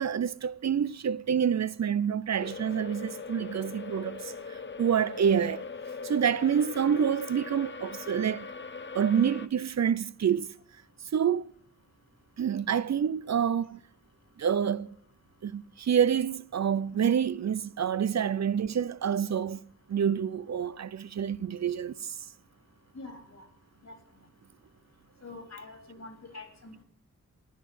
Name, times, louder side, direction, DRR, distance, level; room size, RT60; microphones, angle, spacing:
voice 1, 0.0-5.6 6.0-8.5 8.9-10.5 11.1-11.5 12.4-13.8 14.4-15.0 15.4-22.2, right 8 dB, 60° right, 0.5 m, -27 dB
sound 1, 2.4-9.5, left 5 dB, 40° left, 0.8 m, -41 dB
voice 2, 22.9-23.4 23.8-23.9 25.2-26.8, left 3 dB, 60° left, 3.1 m, -45 dB
15.5 x 10.0 x 6.1 m
wide cardioid pair, 115°, 30 cm